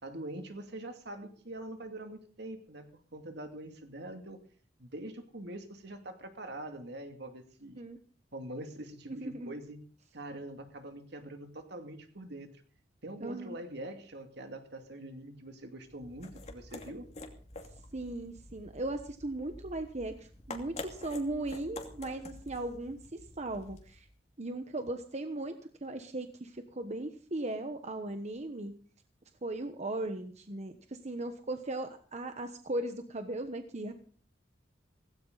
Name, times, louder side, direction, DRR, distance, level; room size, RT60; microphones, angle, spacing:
voice 1, 0.0-4.4 4.8-7.8 8.3-9.8 10.1-12.5 13.0-17.1, right 1 dB, 65° right, 6 dB, 2.5 m, -44 dB
voice 2, 9.1-9.5 13.2-13.6 17.9-24.1 24.4-25.5 25.8-28.7 29.4-33.9, right 2 dB, 40° right, 7 dB, 1.2 m, -37 dB
sound 1, 15.9-24.1, left 2 dB, 40° left, 2.6 m, -48 dB
17.0 x 16.5 x 4.0 m, 0.44 s
head